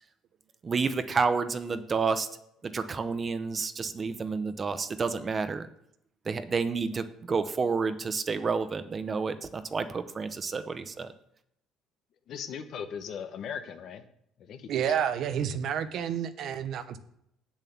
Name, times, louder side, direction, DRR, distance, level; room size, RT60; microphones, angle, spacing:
voice 1, 0.6-2.3 2.6-5.7 6.3-11.1, right 4 dB, 30° right, 11 dB, 0.8 m, -30 dB
voice 2, 12.3-14.0 14.4-14.8, left 7 dB, 55° left, 8 dB, 1.1 m, -38 dB
voice 3, 14.7-17.0, right 8 dB, 55° right, 10 dB, 0.9 m, -30 dB
8.2 x 7.3 x 7.0 m, 0.74 s
cardioid pair, 125°, 0 cm